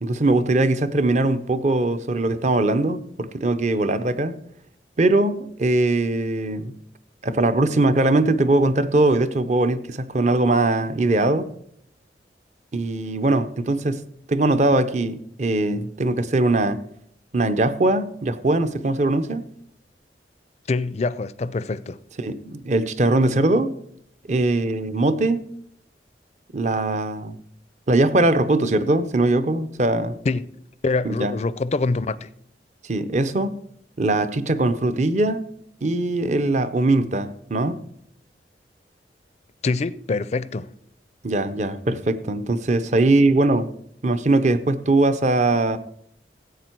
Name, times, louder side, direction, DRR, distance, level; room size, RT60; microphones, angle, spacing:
voice 1, 0.0-4.3 5.0-6.7 7.2-11.5 12.7-14.0 14.3-16.8 17.3-19.4 22.2-23.7 24.3-25.4 26.5-27.3 27.9-30.2 31.0-31.3 32.9-33.6 34.0-35.4 35.8-37.8 41.2-43.7 44.0-45.8, right 2 dB, 40° right, 0.6 m, -21 dB
voice 2, 20.7-22.0 30.2-30.4 30.8-32.3 39.6-40.7, left 3 dB, 40° left, 0.4 m, -25 dB
15.0 x 8.4 x 4.5 m
head